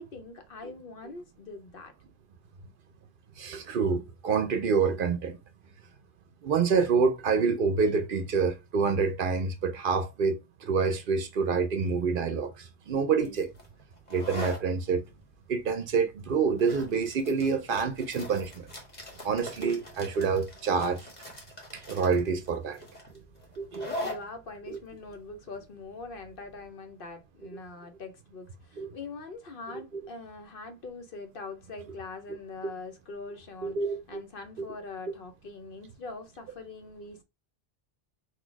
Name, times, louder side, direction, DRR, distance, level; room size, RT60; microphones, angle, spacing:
voice 1, 0.0-1.9 24.0-33.8 34.1-37.2, left 3 dB, 60° left, 1.0 m, -43 dB
voice 2, 3.4-5.4 6.4-13.5 14.1-15.0 15.5-18.7 19.2-21.1 21.7-22.8 23.6-23.9 28.8-28.9 33.6-34.2 34.6-34.7, right 5 dB, 60° right, 0.7 m, -27 dB
sound 1, 13.2-26.6, left 1 dB, 40° left, 1.4 m, -42 dB
4.2 x 2.4 x 4.5 m
omnidirectional pair, 1.1 m